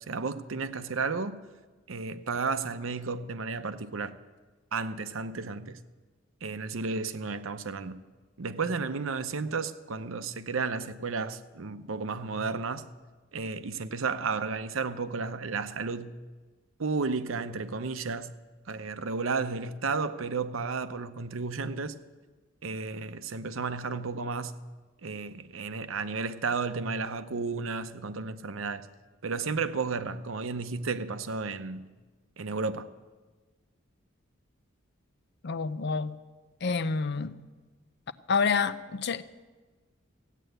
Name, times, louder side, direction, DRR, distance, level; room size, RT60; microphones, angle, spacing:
voice 1, 0.1-1.4 1.9-4.2 4.7-5.8 6.4-8.0 8.4-12.9 13.3-16.2 16.8-18.3 18.7-22.0 22.6-24.6 25.0-28.9 29.2-31.9 32.4-32.9, right 4 dB, 80° right, 0.7 m, -33 dB
voice 2, 35.4-36.2 36.6-37.4 38.3-39.2, left 5 dB, 55° left, 0.6 m, -28 dB
16.0 x 9.1 x 7.9 m
head